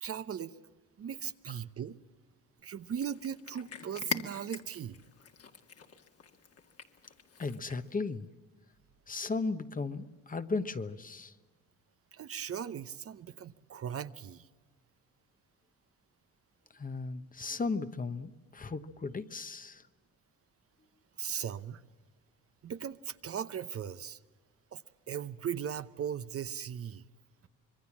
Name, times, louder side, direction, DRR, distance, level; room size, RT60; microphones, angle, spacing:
voice 1, 0.0-0.5 1.0-2.0 2.6-5.0 12.1-14.5 21.2-21.8 22.6-24.2 24.7-24.8 25.1-27.0, right 8 dB, 50° right, 12 dB, 0.9 m, -38 dB
Cat, 2.8-8.0, left 6 dB, 50° left, 2.0 m, -43 dB
voice 2, 7.4-8.3 9.1-11.3 16.7-19.8, left 4 dB, 30° left, 10 dB, 1.2 m, -36 dB
26.0 x 21.5 x 7.4 m, 1.4 s
cardioid pair, 90°, 30 cm